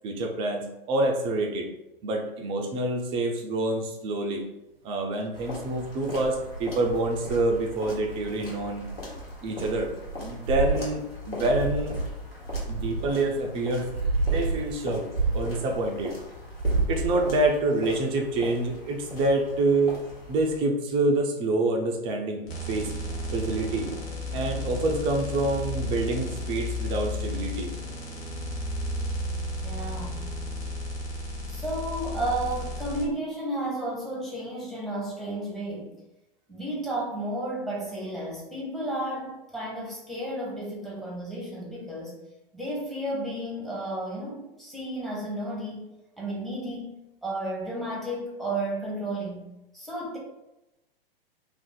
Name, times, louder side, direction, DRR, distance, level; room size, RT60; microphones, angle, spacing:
voice 1, 0.0-1.7 2.0-4.4 4.8-8.8 9.4-9.9 10.2-12.0 12.7-13.9 14.3-15.1 15.3-16.2 16.9-22.9 23.3-23.9 24.3-27.7, right 2 dB, 20° right, 2 dB, 0.4 m, -27 dB
sound 1, 5.3-20.6, left 2 dB, 80° left, 1.4 m, -41 dB
sound 2, 6.1-8.4 8.8-13.4 13.8-16.1 16.4-17.4, right 3 dB, 85° right, 0.6 m, -30 dB
sound 3, 22.5-33.0, left 1 dB, 25° left, 0.9 m, -33 dB
voice 2, 29.6-30.3 31.5-36.0 36.5-42.2 42.5-45.8 46.2-46.9 47.2-49.5 49.7-50.2, right 1 dB, ahead, -4 dB, 0.7 m, -32 dB
2.5 x 2.4 x 3.7 m, 0.94 s
figure-of-eight pair, 105°, 30 cm